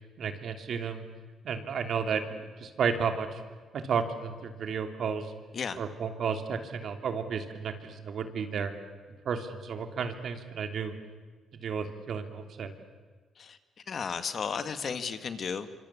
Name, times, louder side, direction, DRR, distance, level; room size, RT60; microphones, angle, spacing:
voice 1, 0.2-1.0 1.4-3.4 3.7-5.3 5.8-8.7 9.2-10.9 11.6-12.7, right 6 dB, 60° right, 7 dB, 3.1 m, -32 dB
voice 2, 13.9-15.7, left 6 dB, 50° left, 11 dB, 1.9 m, -34 dB
25.5 x 25.5 x 8.5 m, 1.4 s
cardioid pair, 90°, 0 cm